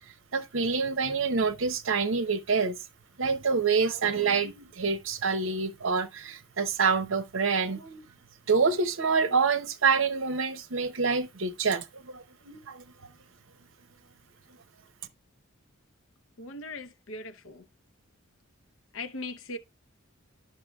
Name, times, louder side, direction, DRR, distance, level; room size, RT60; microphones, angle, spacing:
voice 1, 0.3-2.8 3.2-8.0 8.5-12.8, right 5 dB, 65° right, 0.7 m, -27 dB
voice 2, 16.4-17.6 18.9-19.6, left 2 dB, 70° left, 0.7 m, -39 dB
12.0 x 5.7 x 2.3 m
head